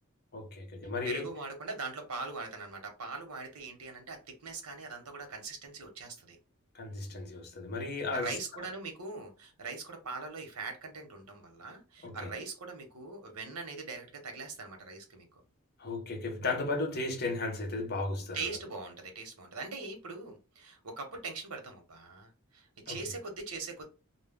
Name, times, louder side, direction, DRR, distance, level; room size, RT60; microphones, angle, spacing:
voice 1, 0.3-1.3 6.7-8.3 12.0-12.3 15.8-18.4 22.9-23.0, left 3 dB, 45° left, 0.7 m, -35 dB
voice 2, 1.0-6.4 8.1-15.3 18.3-23.8, right 4 dB, 85° right, 0.8 m, -41 dB
2.2 x 2.1 x 3.4 m
head